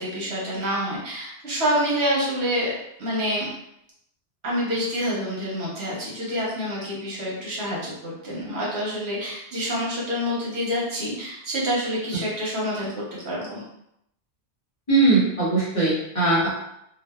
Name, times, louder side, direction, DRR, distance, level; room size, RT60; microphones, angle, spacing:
voice 1, 0.0-2.7 3.0-3.5 4.4-13.6, equal, 75° right, -5 dB, 1.2 m, -27 dB
voice 2, 14.9-16.6, right 3 dB, 35° left, -8 dB, 0.9 m, -20 dB
2.6 x 2.3 x 2.2 m, 0.79 s
omnidirectional pair, 1.1 m